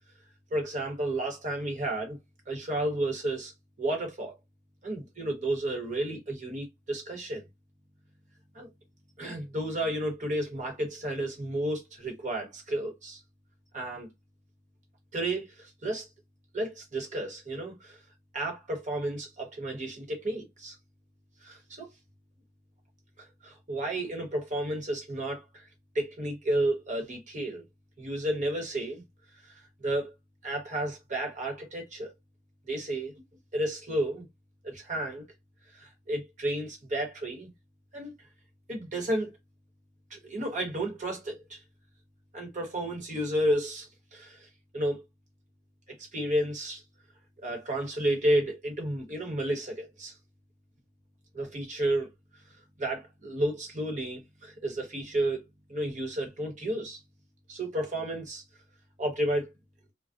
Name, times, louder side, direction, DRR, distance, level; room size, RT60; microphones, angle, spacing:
voice 1, 0.5-2.2 2.5-3.5 3.8-4.3 4.8-7.5 8.5-8.7 9.2-13.2 13.7-14.1 15.1-16.1 16.5-18.0 18.3-20.7 21.4-21.9 23.2-25.6 25.9-27.6 28.0-29.0 29.8-30.1 30.4-32.1 32.7-33.1 33.5-34.2 34.6-35.2 35.7-37.5 37.9-38.1 38.7-39.3 40.1-41.6 42.3-44.5 44.7-45.0 46.0-46.8 47.4-50.1 51.3-52.1 52.8-55.4 55.7-57.0 57.5-58.4 59.0-59.5, right 1 dB, 40° right, 1.0 m, -32 dB
2.3 x 2.1 x 2.5 m
head